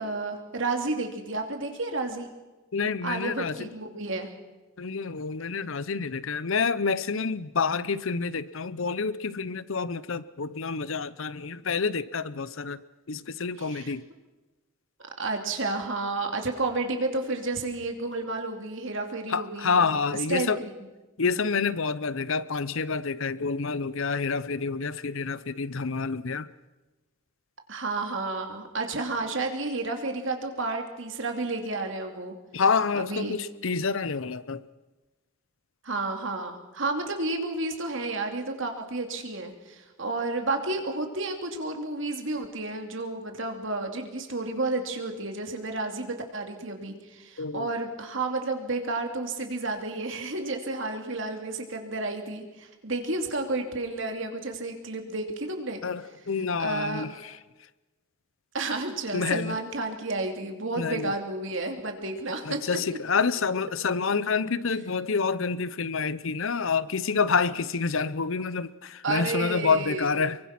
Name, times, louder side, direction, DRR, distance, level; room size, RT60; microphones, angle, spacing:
voice 1, 0.0-2.3 3.0-4.3 13.6-13.9 15.2-19.9 20.3-20.9 27.7-32.3 32.9-33.4 35.8-55.8 56.6-57.0 58.5-62.8 69.0-70.2, right 2 dB, 60° right, 2.8 m, -31 dB
voice 2, 2.7-3.7 4.8-12.8 13.1-14.0 19.3-20.6 21.2-26.5 32.5-34.6 47.4-47.7 55.8-57.1 59.1-59.6 60.8-61.1 62.5-70.4, left 5 dB, 65° left, 0.7 m, -28 dB
24.5 x 23.5 x 5.9 m
head